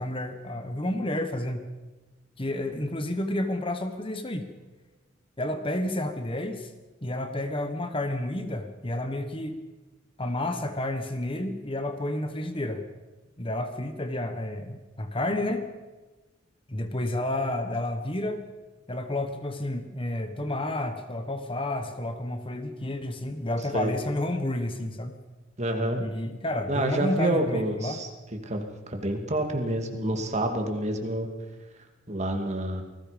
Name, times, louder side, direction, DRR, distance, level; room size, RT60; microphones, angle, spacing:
voice 1, 0.0-1.7 2.4-4.5 5.4-6.7 7.0-9.6 10.2-12.8 13.4-15.7 16.7-18.4 18.9-25.1 26.0-28.0, left 1 dB, 25° left, 8 dB, 1.4 m, -30 dB
voice 2, 25.6-26.0 26.7-28.1 28.5-31.3 32.1-32.8, right 1 dB, 35° right, 4 dB, 2.6 m, -28 dB
28.0 x 19.5 x 5.3 m, 1.2 s
head